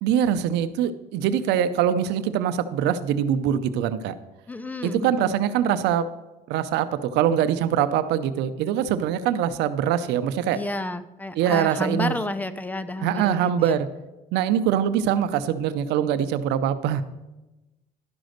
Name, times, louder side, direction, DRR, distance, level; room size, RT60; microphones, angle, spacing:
voice 1, 0.0-4.1 4.8-6.1 6.5-10.6 11.4-12.2 13.0-13.9 14.3-17.0, right 9 dB, 90° right, 13 dB, 0.6 m, -23 dB
voice 2, 4.5-5.4 10.5-13.8, left 2 dB, 10° left, 13 dB, 0.5 m, -31 dB
11.5 x 5.1 x 6.5 m, 1.0 s
cardioid pair, 110°, 17 cm